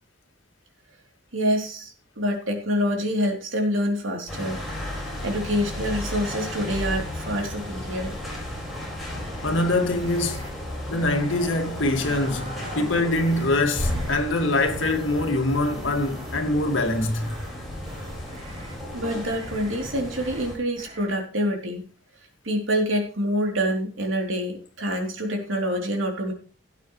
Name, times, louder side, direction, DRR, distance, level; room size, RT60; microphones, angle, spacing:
voice 1, 1.3-4.6 5.2-8.2 18.9-21.9 22.4-26.3, equal, 80° right, 3.3 m, -26 dB
sound 1, 4.3-20.5, left 1 dB, ahead, 4.8 m, -34 dB
voice 2, 9.4-10.5 10.9-17.3, left 2 dB, 80° left, 2.1 m, -24 dB
sound 2, 10.0-10.5 11.0-11.6 11.9-12.8 13.2-13.5 13.8-14.2 14.7-16.4 16.8-17.5 17.8-18.7 19.2-19.9 20.2-20.4 20.8-21.1, right 1 dB, 30° right, 2.4 m, -42 dB
16.5 x 8.8 x 3.2 m
head